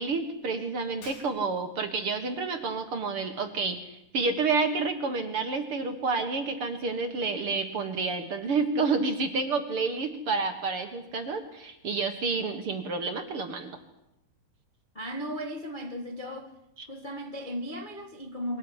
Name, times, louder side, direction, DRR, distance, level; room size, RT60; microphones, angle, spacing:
voice 1, 0.0-13.7 16.8-16.9, right 4 dB, 50° right, 1.9 m, -29 dB
Shatter, 1.0-1.8, left 2 dB, 65° left, 6.6 m, -50 dB
voice 2, 14.9-16.5 16.9-18.6, equal, 40° left, 0.6 m, -36 dB
23.5 x 18.0 x 9.9 m
omnidirectional pair, 4.2 m